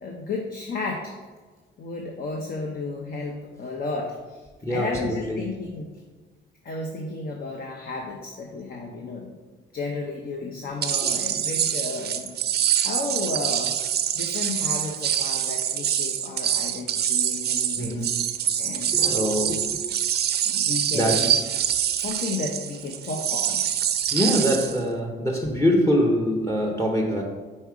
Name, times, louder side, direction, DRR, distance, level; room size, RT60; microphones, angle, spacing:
voice 1, 0.0-1.1 1.8-5.9 6.6-9.3 9.7-12.3 12.8-13.7 14.1-18.1 18.6-19.5 20.4-21.3 22.0-23.7, left 3 dB, 50° left, 1 dB, 0.9 m, -33 dB
voice 2, 4.6-5.5 11.0-11.1 17.8-18.2 18.9-19.8 20.9-21.4 24.1-27.2, equal, 15° left, 1 dB, 0.9 m, -24 dB
sound 1, 10.8-24.8, right 9 dB, 55° right, 0.5 m, -25 dB
5.5 x 4.3 x 4.7 m, 1.4 s
cardioid pair, 90°, 20 cm